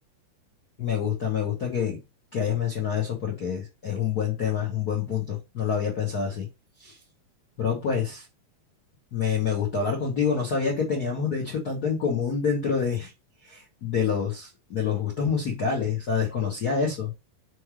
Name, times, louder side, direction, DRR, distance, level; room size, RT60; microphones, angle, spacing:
voice 1, 0.8-2.0 2.3-6.5 6.8-7.0 7.6-8.3 9.1-13.1 13.4-17.1, left 6 dB, 65° left, 0.9 m, -27 dB
6.2 x 3.2 x 4.8 m
omnidirectional pair, 3.6 m